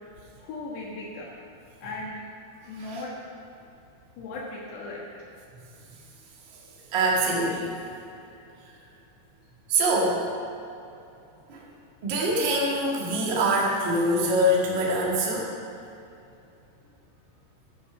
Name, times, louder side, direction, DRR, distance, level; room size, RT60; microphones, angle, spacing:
voice 1, 0.4-1.3 1.8-2.2 2.7-3.1 4.2-5.0 11.5-11.8, left 2 dB, 75° left, -4 dB, 3.4 m, -37 dB
voice 2, 6.9-7.8 9.7-10.2 11.5-11.6 12.0-15.5, right 1 dB, 60° right, -4 dB, 1.2 m, -24 dB
12.5 x 8.2 x 5.9 m, 2.7 s
omnidirectional pair, 5.2 m